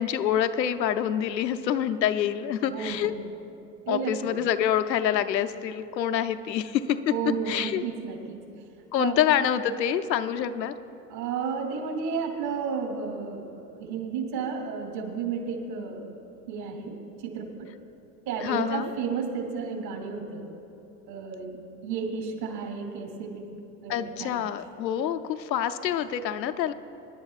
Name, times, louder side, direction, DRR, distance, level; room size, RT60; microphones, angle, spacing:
voice 1, 0.0-3.1 3.9-7.1 7.5-7.8 8.9-10.7 18.4-18.9 23.9-26.7, left 10 dB, 90° left, 9 dB, 0.7 m, -26 dB
voice 2, 2.7-3.2 3.9-4.2 7.1-8.4 9.0-9.2 11.1-16.1 16.5-17.7 18.3-20.5 21.1-23.5 23.8-24.4, right 6 dB, 75° right, 2 dB, 2.7 m, -32 dB
23.5 x 10.5 x 2.4 m, 2.7 s
hypercardioid pair, 80°, 49 cm